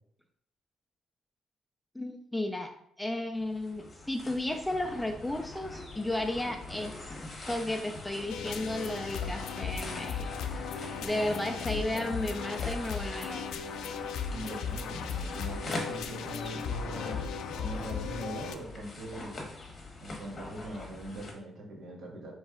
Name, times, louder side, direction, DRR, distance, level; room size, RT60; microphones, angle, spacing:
voice 1, 1.9-7.0 7.5-10.3 11.0-13.6, left 1 dB, 5° left, 5 dB, 0.4 m, -34 dB
sound 1, 3.4-21.3, left 2 dB, 30° left, 1.0 m, -43 dB
sound 2, 8.3-18.5, left 6 dB, 85° left, 0.3 m, -36 dB
voice 2, 14.3-17.3 17.5-19.4 20.0-22.3, right 1 dB, 60° right, -1 dB, 1.4 m, -41 dB
4.4 x 3.1 x 3.7 m, 0.72 s
cardioid pair, 120°, 0 cm